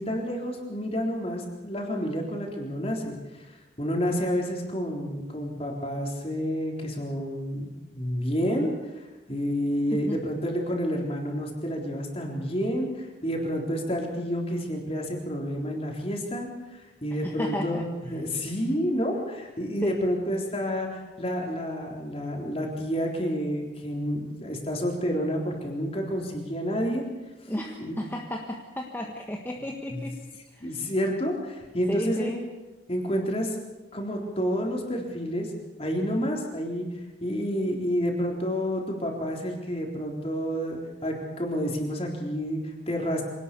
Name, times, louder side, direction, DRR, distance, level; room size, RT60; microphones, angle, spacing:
voice 1, 0.0-3.5 3.8-8.7 9.3-27.0 27.8-28.0 29.9-30.1 30.6-32.3 32.9-33.6 33.9-35.5 35.8-36.9 37.2-43.2, equal, 30° left, 0 dB, 3.9 m, -29 dB
voice 2, 9.9-10.2 17.2-17.8 19.8-19.9 27.5-30.1 30.5-30.7 31.9-32.4, equal, 10° left, 0 dB, 1.5 m, -33 dB
25.5 x 18.5 x 6.9 m, 1.1 s
head